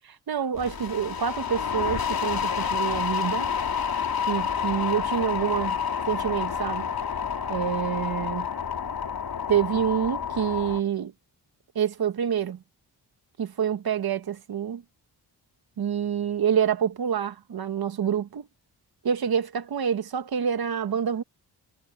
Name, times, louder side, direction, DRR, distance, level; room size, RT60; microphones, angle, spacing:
voice 1, 0.3-3.5 4.3-5.8 6.1-6.9 7.5-8.5 9.5-11.1 11.7-12.6 13.4-14.8 15.8-18.5 19.0-21.2, right 8 dB, 65° right, 1.5 m, -27 dB
sound 1, 0.6-10.8, left 7 dB, 60° left, 3.2 m, -29 dB
cardioid pair, 90°, 40 cm